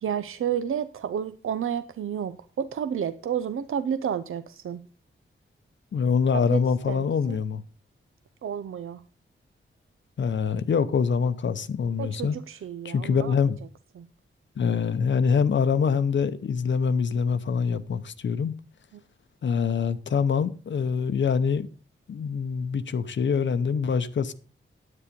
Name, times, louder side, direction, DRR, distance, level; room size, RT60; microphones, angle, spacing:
voice 1, 0.0-4.8 6.3-7.1 8.4-9.0 12.0-13.4 14.0-14.1, right 8 dB, 80° right, 0.6 m, -31 dB
voice 2, 5.9-7.6 10.2-12.4 12.8-13.6 14.6-18.5 19.4-21.7 22.1-24.3, left 6 dB, 60° left, 0.8 m, -25 dB
9.9 x 8.8 x 5.2 m
wide cardioid pair, 180°, 21 cm